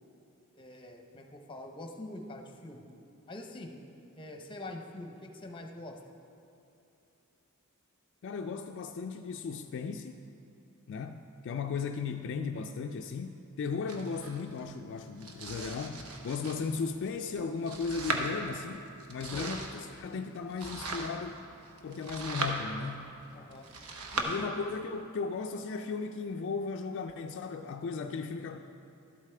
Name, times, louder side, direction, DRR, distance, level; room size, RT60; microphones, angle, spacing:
voice 1, 0.5-2.8 3.3-3.8 4.2-6.0 19.3-19.5 23.3-23.7 24.1-24.5, left 1 dB, 20° left, 3 dB, 0.7 m, -44 dB
voice 2, 8.2-10.2 10.9-21.4 21.8-23.1 24.3-28.6, left 5 dB, 55° left, 5 dB, 0.3 m, -36 dB
Domestic sounds home sounds, 13.9-24.2, right 3 dB, 90° right, 0.9 m, -39 dB
12.5 x 8.2 x 3.3 m, 2.8 s
head